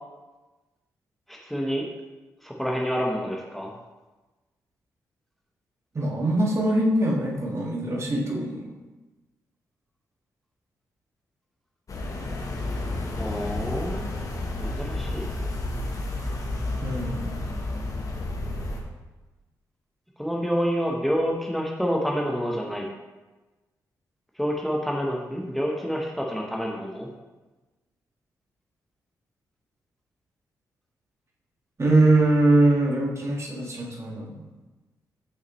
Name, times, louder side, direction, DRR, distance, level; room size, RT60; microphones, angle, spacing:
voice 1, 1.3-1.9 2.4-3.8 13.2-14.1 14.6-15.2 20.2-22.9 24.4-27.1, equal, ahead, -1 dB, 1.1 m, -28 dB
voice 2, 5.9-8.8 16.8-17.3 31.8-34.5, right 2 dB, 40° right, -2 dB, 1.6 m, -22 dB
sound 1, 11.9-18.8, left 2 dB, 50° left, 1.2 m, -31 dB
6.1 x 5.7 x 3.1 m, 1.2 s
supercardioid pair, 50°, 8 cm